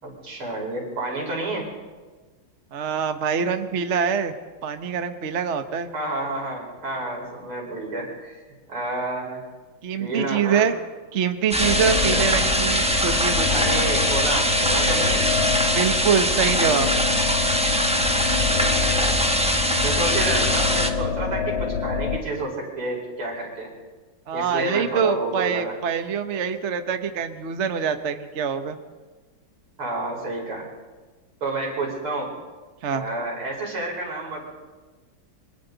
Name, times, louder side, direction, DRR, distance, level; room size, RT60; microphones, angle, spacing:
voice 1, 0.0-1.7 5.9-8.4 8.7-9.4 10.0-10.7 12.1-12.2 13.5-15.3 18.4-19.2 19.8-23.7 24.3-25.7 29.8-30.6 31.4-32.3 32.9-34.4, right 2 dB, 80° right, -1 dB, 5.8 m, -29 dB
voice 2, 2.7-4.3 4.6-5.9 9.8-10.8 11.1-13.7 15.7-16.9 24.3-28.8 32.8-33.0, right 7 dB, 45° right, 8 dB, 1.1 m, -24 dB
sound 1, 11.5-20.9, equal, 5° right, 0.9 m, -22 dB
sound 2, 11.6-22.2, left 6 dB, 70° left, 2.4 m, -27 dB
27.5 x 24.0 x 4.0 m, 1.3 s
omnidirectional pair, 2.3 m